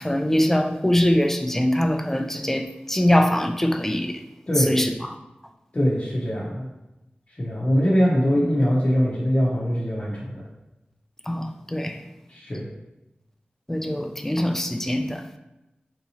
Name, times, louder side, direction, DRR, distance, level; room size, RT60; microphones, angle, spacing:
voice 1, 0.0-4.2 4.6-5.2 11.3-12.0 13.7-15.2, left 1 dB, 10° left, 6 dB, 0.3 m, -23 dB
voice 2, 4.5-4.8 5.7-6.7 7.4-10.4 12.3-12.7, equal, 40° left, -6 dB, 0.7 m, -22 dB
3.6 x 2.8 x 2.7 m, 0.97 s
wide cardioid pair, 55°, 3 cm